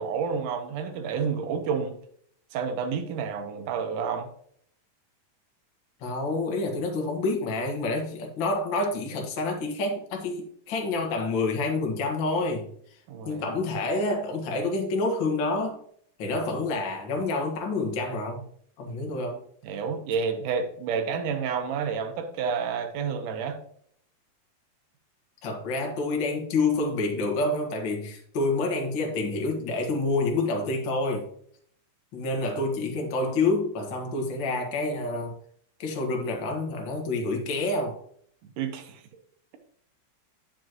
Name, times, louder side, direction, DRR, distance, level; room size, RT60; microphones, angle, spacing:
voice 1, 0.0-2.0 2.5-4.3 13.1-13.4 19.6-23.6 38.6-39.0, right 6 dB, 75° right, 2.5 m, -29 dB
voice 2, 6.0-12.7 13.3-15.8 16.2-18.5 18.8-19.4 25.4-31.3 32.1-35.4 35.8-38.0, left 2 dB, 45° left, 1.8 m, -28 dB
9.9 x 6.4 x 3.0 m
omnidirectional pair, 3.8 m